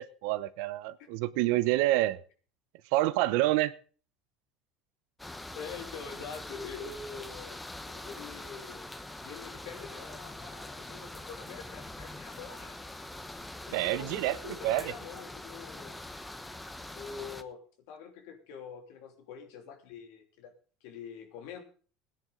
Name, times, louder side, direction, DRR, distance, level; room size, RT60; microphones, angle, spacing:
voice 1, 0.0-2.2 2.9-3.7 13.7-14.4 14.6-14.8, right 16 dB, 75° right, 15 dB, 0.8 m, -27 dB
sound 1, 5.2-17.4, left 1 dB, 10° left, 1.1 m, -44 dB
voice 2, 5.5-7.6 7.8-8.9 9.2-12.8 13.7-15.9 16.9-17.6 17.9-20.5 20.8-21.6, left 6 dB, 75° left, 4 dB, 2.9 m, -45 dB
17.0 x 10.5 x 3.9 m, 0.40 s
supercardioid pair, 105°, 0 cm